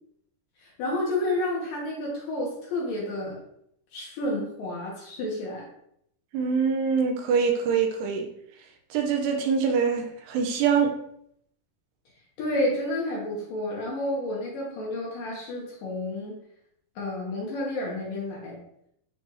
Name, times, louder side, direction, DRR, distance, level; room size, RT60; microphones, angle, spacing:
voice 1, 0.6-3.4 3.9-5.7 12.4-16.3 17.0-18.6, left 1 dB, 65° left, -4 dB, 2.5 m, -30 dB
voice 2, 6.3-8.3 8.9-10.9, right 6 dB, 80° right, 3 dB, 2.7 m, -24 dB
9.3 x 3.4 x 3.0 m, 0.71 s
omnidirectional pair, 5.0 m